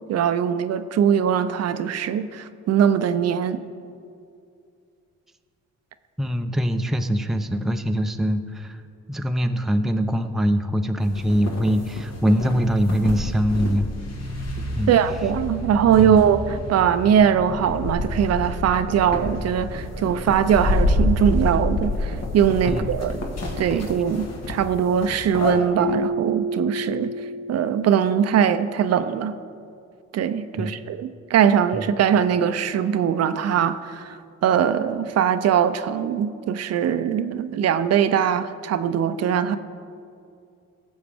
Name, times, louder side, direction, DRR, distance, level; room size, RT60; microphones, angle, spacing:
voice 1, 0.0-3.6 14.9-23.2 23.6-27.1 27.5-29.4 30.1-39.6, right 8 dB, 55° right, 12 dB, 0.5 m, -21 dB
voice 2, 6.2-8.8 9.1-13.9 14.8-14.9 16.0-16.2 22.7-22.9 23.7-23.8 30.6-30.7 31.7-31.8, equal, ahead, 7 dB, 0.5 m, -23 dB
sound 1, 11.0-25.6, left 1 dB, 60° left, 1.7 m, -28 dB
Keyboard (musical), 25.8-28.6, right 1 dB, 40° right, 0.9 m, -30 dB
16.5 x 7.1 x 3.5 m, 2.4 s
cardioid pair, 90°, 30 cm